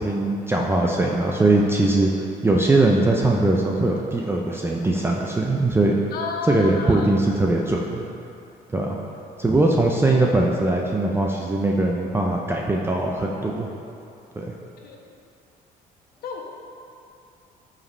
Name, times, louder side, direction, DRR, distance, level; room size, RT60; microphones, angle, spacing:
voice 1, 0.0-6.0 6.5-8.1 8.7-8.9 9.4-13.7 14.4-14.5, right 2 dB, 15° right, -1 dB, 0.6 m, -21 dB
voice 2, 6.1-7.1 14.8-15.0 16.2-16.4, left 5 dB, 65° left, 0 dB, 1.3 m, -31 dB
12.5 x 5.1 x 3.3 m, 2.6 s
cardioid pair, 110°, 17 cm